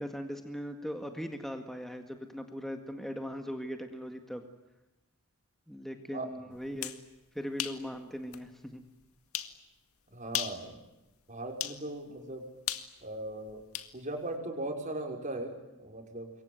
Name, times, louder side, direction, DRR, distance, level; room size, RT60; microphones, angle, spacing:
voice 1, 0.0-4.4 5.7-7.0 7.3-8.8, equal, ahead, 5 dB, 1.9 m, -39 dB
sound 1, 6.6-7.0 7.6-7.8 8.3-8.4 9.3-9.6 10.2-10.6 11.6-11.8 12.7-13.9, left 11 dB, 80° left, 1.9 m, -35 dB
voice 2, 10.1-10.8 11.3-12.5 13.0-13.6 13.9-16.3, right 2 dB, 35° right, 3 dB, 5.6 m, -38 dB
27.0 x 22.5 x 9.6 m, 0.97 s
head